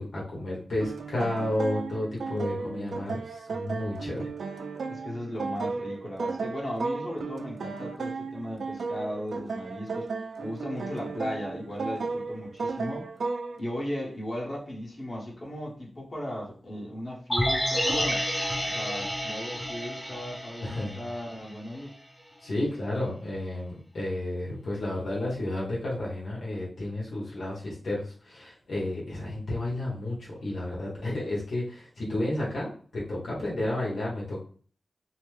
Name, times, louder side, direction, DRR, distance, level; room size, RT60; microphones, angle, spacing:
voice 1, 0.0-4.3 20.6-21.0 22.4-34.4, left 1 dB, 75° left, -5 dB, 1.1 m, -32 dB
sound 1, 0.8-13.6, right 4 dB, 75° right, 0.3 m, -35 dB
voice 2, 2.2-2.9 4.9-10.1 10.4-13.1 13.6-18.2 18.7-21.9, equal, 40° left, -4 dB, 1.1 m, -36 dB
sound 2, 17.3-21.5 21.8-21.9, equal, 15° left, 0.6 m, -30 dB
2.8 x 2.1 x 3.1 m, 0.43 s
cardioid pair, 70°, 0 cm